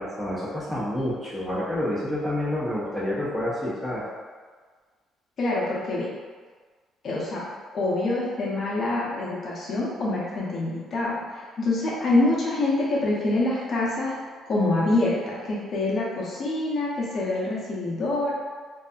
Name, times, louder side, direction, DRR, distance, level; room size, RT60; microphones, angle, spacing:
voice 1, 0.0-4.0, left 1 dB, 15° right, -9 dB, 0.9 m, -28 dB
voice 2, 5.4-6.1 7.0-7.4 7.7-14.1 14.5-18.3, left 2 dB, 50° left, -6 dB, 0.6 m, -25 dB
2.6 x 2.4 x 2.3 m, 1.5 s
cardioid pair, 105°, 0 cm